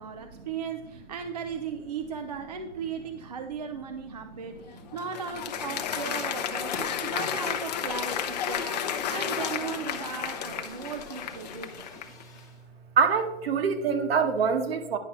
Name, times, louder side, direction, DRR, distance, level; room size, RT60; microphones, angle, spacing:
voice 1, 0.0-11.9, right 6 dB, 35° right, 6 dB, 0.4 m, -37 dB
Applause, 4.6-12.2, left 8 dB, 35° left, 0.7 m, -32 dB
Fire, 6.7-12.6, left 3 dB, 10° left, 1.2 m, -47 dB
voice 2, 13.0-15.0, right 6 dB, 50° right, 8 dB, 1.1 m, -25 dB
10.5 x 5.8 x 3.0 m, 1.1 s
hypercardioid pair, 140°, 37 cm